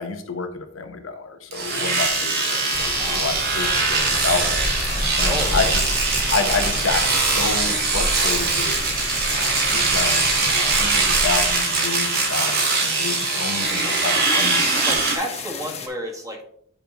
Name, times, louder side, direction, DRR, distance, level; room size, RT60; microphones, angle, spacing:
voice 1, 0.0-4.7 5.2-5.7 6.3-8.7 9.3-15.0, left 4 dB, 80° left, 7 dB, 1.0 m, -29 dB
Domestic sounds home sounds, 1.5-15.2, right 4 dB, 50° right, 1.7 m, -22 dB
sound 1, 1.9-15.9, left 6 dB, 35° left, 0.9 m, -34 dB
sound 2, 2.7-11.5, equal, ahead, 1.6 m, -31 dB
voice 2, 5.2-5.7 10.5-10.7 14.8-16.4, equal, 15° right, 0 dB, 1.6 m, -31 dB
9.1 x 5.4 x 2.9 m, 0.64 s
head